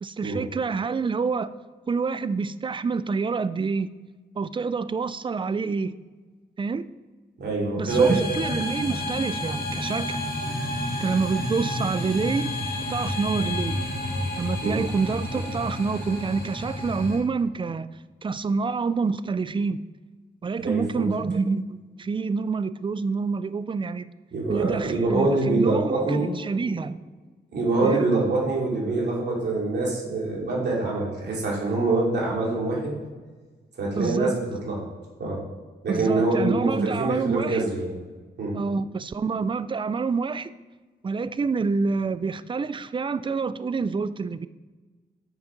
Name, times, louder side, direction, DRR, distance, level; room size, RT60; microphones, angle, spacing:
voice 1, 0.0-1.5 1.9-3.9 4.4-6.0 6.6-6.8 7.8-10.2 11.0-12.5 12.9-13.8 14.4-17.9 18.2-19.8 20.4-24.1 24.5-27.0 27.8-28.1 33.9-34.4 35.9-37.7 38.5-40.5 41.0-44.5, right 4 dB, 30° right, 0.4 m, -27 dB
voice 2, 7.4-8.2 14.6-14.8 20.6-21.1 24.3-26.3 26.6-26.7 27.5-32.9 33.8-34.8 35.2-35.4 35.8-37.9 38.4-38.6, right 2 dB, 75° right, 2.8 m, -25 dB
sound 1, 7.9-17.2, left 1 dB, 65° left, 2.1 m, -30 dB
7.3 x 6.6 x 5.1 m
cardioid pair, 90°, 17 cm